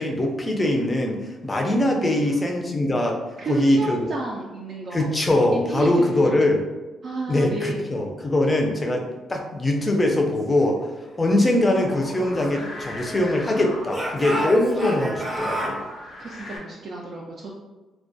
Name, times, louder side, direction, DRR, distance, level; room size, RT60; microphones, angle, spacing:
voice 1, 0.0-3.2 3.5-4.0 4.9-6.6 7.3-9.0 9.3-10.8 11.2-15.8, left 1 dB, 25° left, 1 dB, 0.4 m, -22 dB
voice 2, 3.4-5.1 5.5-6.5 7.0-7.9 16.2-17.5, right 2 dB, 55° right, -3 dB, 0.3 m, -31 dB
sound 1, 11.6-16.6, left 1 dB, 75° left, 0.6 m, -40 dB
Speech / Shout, 11.9-13.4 13.9-15.8, equal, 15° right, 0.7 m, -31 dB
2.2 x 2.2 x 2.6 m, 1.2 s
cardioid pair, 90°, 0 cm